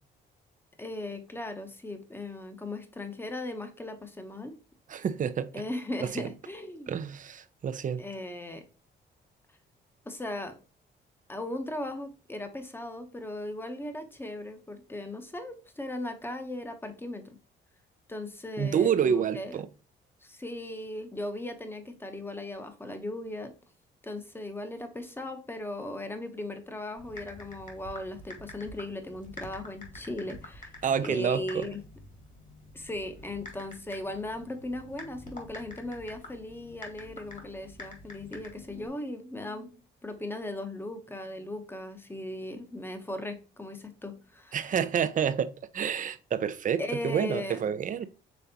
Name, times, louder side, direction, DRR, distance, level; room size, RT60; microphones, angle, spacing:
voice 1, 0.8-4.6 5.5-6.9 8.0-8.6 10.1-10.6 11.3-17.4 18.1-19.5 20.2-23.5 24.0-30.7 31.0-31.8 32.7-44.7 46.8-47.6, left 1 dB, 10° left, 0.9 m, -38 dB
voice 2, 4.9-5.5 6.0-6.3 6.9-8.0 18.6-19.7 30.8-31.6 44.5-48.1, right 8 dB, 40° right, 0.5 m, -28 dB
Typing, 27.0-38.9, left 2 dB, 40° left, 1.8 m, -47 dB
5.2 x 3.4 x 2.8 m
cardioid pair, 90°, 20 cm